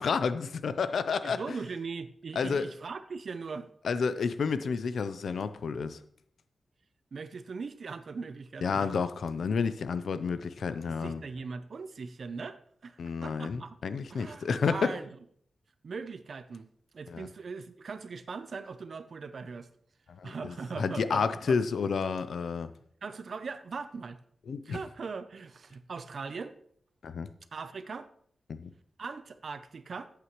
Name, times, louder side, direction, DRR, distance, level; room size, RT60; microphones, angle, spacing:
voice 1, 0.0-1.4 2.4-2.7 3.8-6.0 8.6-11.2 13.0-14.9 17.1-17.3 20.1-22.7 24.5-24.8 27.0-27.3 28.6-28.7, left 5 dB, 85° left, 0.6 m, -30 dB
voice 2, 1.2-3.7 7.1-9.0 10.9-13.7 14.1-15.1 15.8-16.7 16.9-19.7 20.2-21.6 23.0-24.2 24.6-26.6 27.5-28.1 29.0-30.1, right 4 dB, 55° right, 0.6 m, -40 dB
14.5 x 8.3 x 3.1 m
wide cardioid pair, 175°, 0 cm